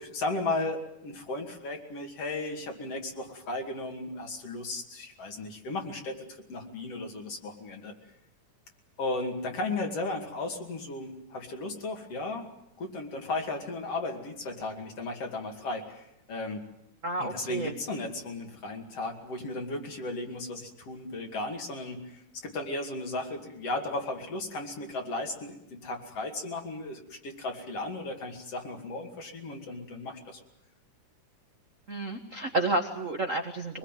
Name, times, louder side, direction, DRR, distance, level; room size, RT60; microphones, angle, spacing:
voice 1, 0.0-7.9 9.0-12.5 12.8-16.6 17.2-30.4, left 2 dB, 50° left, 3 dB, 3.5 m, -35 dB
voice 2, 17.0-17.7 31.9-33.8, right 2 dB, 40° right, 4 dB, 1.1 m, -30 dB
23.5 x 21.0 x 9.2 m, 0.82 s
omnidirectional pair, 3.7 m